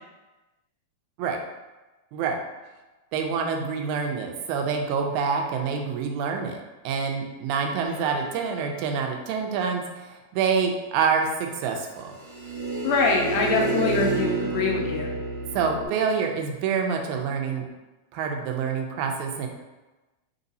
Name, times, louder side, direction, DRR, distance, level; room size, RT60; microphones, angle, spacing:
voice 1, 3.1-12.1 15.5-17.7 18.1-19.5, right 5 dB, 90° right, 3 dB, 2.0 m, -27 dB
sound 1, 7.9-8.9 12.2-15.9, right 2 dB, 65° right, 1.5 m, -29 dB
voice 2, 12.8-15.1, left 4 dB, 80° left, 1 dB, 1.6 m, -24 dB
4.6 x 2.6 x 4.0 m, 1.1 s
omnidirectional pair, 3.3 m